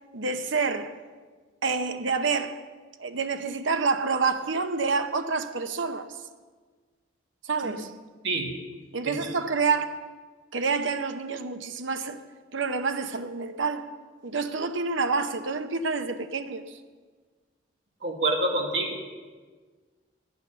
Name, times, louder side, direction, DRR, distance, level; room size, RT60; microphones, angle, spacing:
voice 1, 0.1-0.9 1.6-2.6 3.0-6.2 7.4-7.9 8.9-10.0 10.5-12.2 12.5-13.9 14.2-16.8, right 4 dB, 80° right, 0.8 m, -28 dB
voice 2, 18.0-19.1, right 2 dB, 65° right, 2.2 m, -27 dB
12.0 x 8.8 x 6.9 m
head